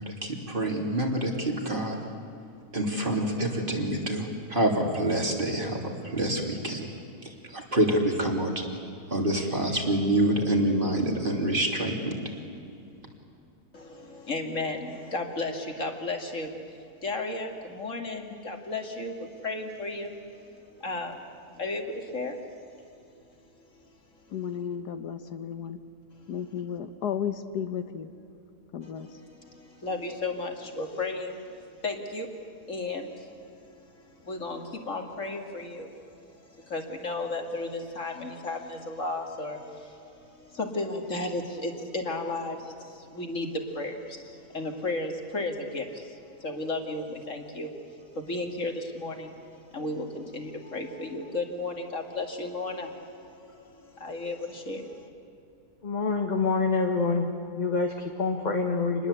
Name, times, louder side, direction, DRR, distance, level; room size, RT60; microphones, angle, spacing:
voice 1, 0.0-2.0 2.7-6.9 7.2-8.6 9.1-12.2, right 1 dB, 30° right, 1 dB, 3.2 m, -27 dB
voice 2, 13.7-20.1 20.8-21.3 21.6-22.8 24.1-24.3 29.3-32.3 32.7-55.1, left 2 dB, 50° left, 3 dB, 2.6 m, -34 dB
voice 3, 24.3-25.8 26.3-28.1 28.7-29.2, left 8 dB, 90° left, 10 dB, 1.7 m, -33 dB
voice 4, 55.8-57.3 57.6-59.1, left 4 dB, 30° left, 3 dB, 1.4 m, -26 dB
27.0 x 20.5 x 8.3 m, 2.6 s
omnidirectional pair, 1.7 m